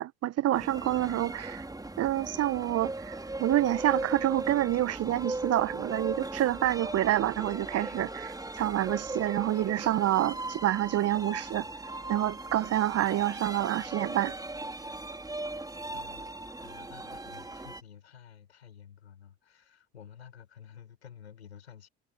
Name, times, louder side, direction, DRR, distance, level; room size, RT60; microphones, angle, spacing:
voice 1, 0.0-1.6 2.0-11.7 12.1-14.3, right 13 dB, 50° right, 1.5 m, -28 dB
sound 1, 0.5-17.8, right 2 dB, 10° right, 5.6 m, -38 dB
voice 2, 15.9-21.9, left 8 dB, 80° left, 7.8 m, -52 dB
figure-of-eight pair, 55°, 32 cm